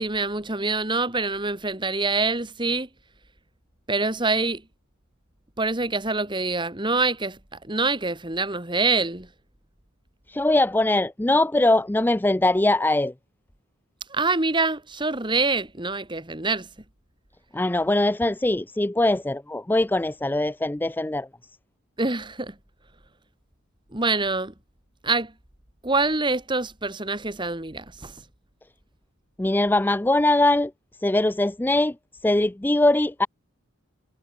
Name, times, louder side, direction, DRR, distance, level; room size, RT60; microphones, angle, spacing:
voice 1, 0.0-2.9 3.9-4.6 5.6-7.4 7.6-9.3 14.1-16.7 22.0-22.5 23.9-24.5 25.0-25.3 25.8-28.1, right 3 dB, 20° right, 2.2 m, -25 dB
voice 2, 10.3-13.1 17.5-21.3 29.4-30.7 31.0-31.9 32.2-33.3, left 2 dB, 10° left, 0.4 m, -21 dB
head